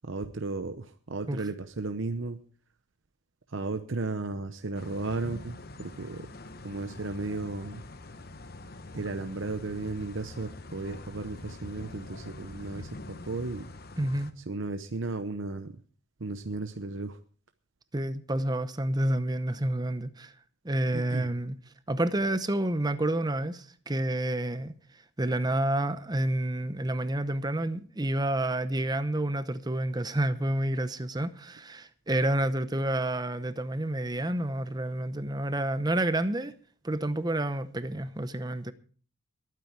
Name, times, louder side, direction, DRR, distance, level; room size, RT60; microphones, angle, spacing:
voice 1, 0.0-2.4 3.5-6.3 6.6-7.8 8.9-13.7 14.5-15.7 16.2-17.2 20.9-21.3, right 3 dB, 65° right, 0.8 m, -35 dB
sound 1, 4.7-14.3, left 2 dB, 45° left, 1.0 m, -45 dB
voice 2, 14.0-14.3 17.9-20.3 20.6-21.6 21.9-36.5 36.8-38.7, right 1 dB, 20° right, 0.8 m, -29 dB
20.5 x 9.3 x 4.6 m
head